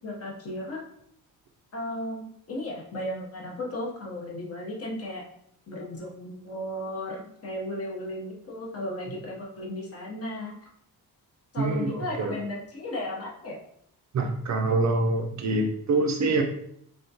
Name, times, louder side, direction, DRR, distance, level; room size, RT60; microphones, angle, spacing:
voice 1, 0.0-0.8 1.7-5.2 5.7-10.5 11.5-13.6, left 1 dB, 40° left, -2 dB, 0.8 m, -35 dB
voice 2, 11.6-12.4 14.1-16.4, right 2 dB, 50° right, 4 dB, 0.5 m, -25 dB
3.5 x 3.4 x 2.7 m, 0.69 s
wide cardioid pair, 170°, 38 cm